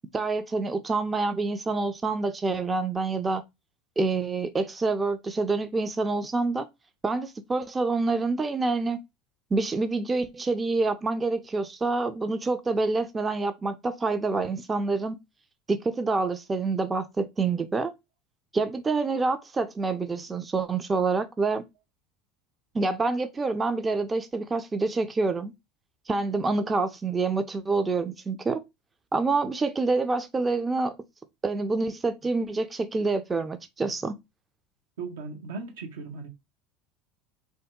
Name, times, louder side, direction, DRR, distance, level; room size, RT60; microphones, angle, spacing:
voice 1, 0.1-3.4 4.0-6.7 7.0-9.0 9.5-15.2 15.7-17.9 18.5-21.6 22.7-25.5 26.1-28.6 29.1-31.0 31.4-34.1, right 3 dB, 20° right, 0.4 m, -27 dB
voice 2, 35.0-36.3, right 4 dB, 80° right, 0.8 m, -37 dB
2.6 x 2.2 x 3.5 m
hypercardioid pair, 85°, 0 cm